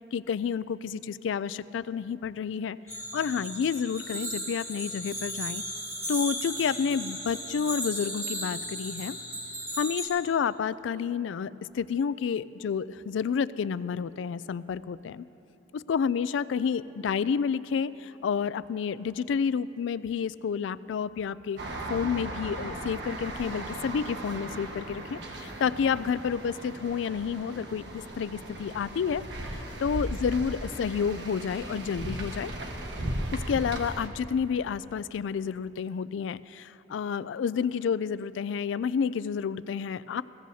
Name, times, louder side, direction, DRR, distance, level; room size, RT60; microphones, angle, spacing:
voice 1, 0.1-2.8 3.1-5.6 6.1-9.2 9.8-15.2 15.7-21.6 21.9-29.2 29.8-32.5 33.3-40.2, left 6 dB, 85° left, 17 dB, 0.3 m, -30 dB
sound 1, 2.9-10.1, equal, 15° right, 3.0 m, -36 dB
sound 2, 21.6-34.1, right 1 dB, 70° right, 1.3 m, -37 dB
21.5 x 16.5 x 2.8 m, 2.9 s
head